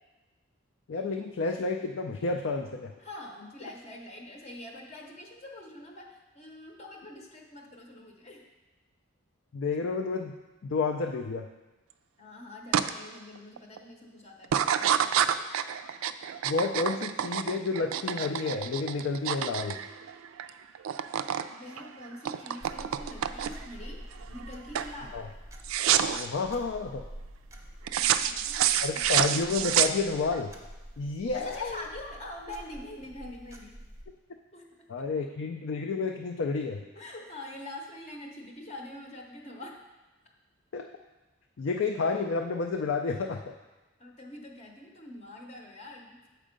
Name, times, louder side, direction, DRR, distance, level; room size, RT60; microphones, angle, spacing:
voice 1, 0.9-2.9 9.5-11.5 16.4-19.8 25.1-25.2 26.0-27.1 28.8-30.5 31.0-31.8 34.9-36.8 40.7-40.9 41.6-43.4, left 4 dB, 60° left, 4 dB, 0.4 m, -30 dB
voice 2, 3.0-8.4 12.2-15.5 21.5-25.2 28.0-29.3 31.3-33.8 34.5-35.3 36.9-39.8 44.0-46.2, left 1 dB, 30° left, 0 dB, 0.7 m, -45 dB
sound 1, 12.7-12.9 13.4-13.8 14.4-20.5 20.7-21.5 21.8-23.7 24.2-24.5 24.7-25.0 25.6-26.3 27.9-30.4, right 10 dB, 85° right, 0.3 m, -28 dB
sound 2, 22.6-34.0, equal, 15° right, 0.6 m, -47 dB
7.5 x 4.4 x 5.1 m, 1.1 s
head